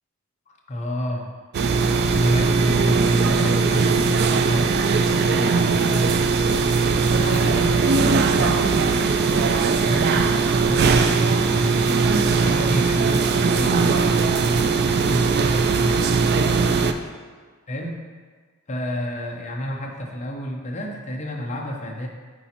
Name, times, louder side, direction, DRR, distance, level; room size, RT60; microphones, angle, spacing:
voice 1, 0.5-1.3 2.1-6.7 7.2-16.2 17.7-18.0 18.7-22.1, equal, 35° left, 0 dB, 0.7 m, -31 dB
sound 1, 1.5-16.9, right 4 dB, 50° right, 0.3 m, -19 dB
8.4 x 4.0 x 2.9 m, 1.5 s
head